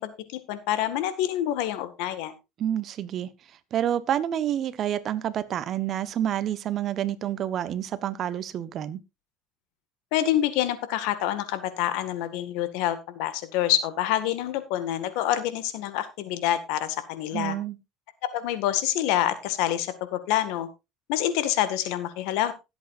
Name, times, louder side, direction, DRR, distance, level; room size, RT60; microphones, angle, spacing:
voice 1, 0.0-2.3 10.1-17.6 18.3-20.7 21.1-22.5, left 12 dB, 75° left, 1.9 m, -27 dB
voice 2, 2.6-3.3 3.7-9.0 17.3-17.8, right 10 dB, 45° right, 1.1 m, -28 dB
19.5 x 8.3 x 2.6 m
supercardioid pair, 110°, 0 cm